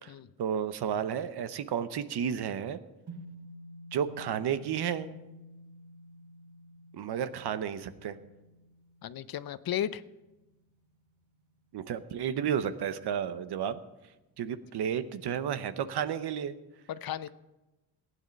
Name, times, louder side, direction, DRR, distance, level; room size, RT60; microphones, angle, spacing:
voice 1, 0.4-2.8 3.9-5.1 6.9-8.2 11.7-13.8 14.4-16.6, right 8 dB, 70° right, 12 dB, 0.9 m, -32 dB
sound 1, 3.1-11.5, equal, 45° right, 2.6 m, -51 dB
voice 2, 9.0-10.0 16.9-17.3, left 10 dB, 60° left, 14 dB, 0.7 m, -34 dB
16.0 x 9.5 x 5.3 m, 1.0 s
cardioid pair, 90°, 40 cm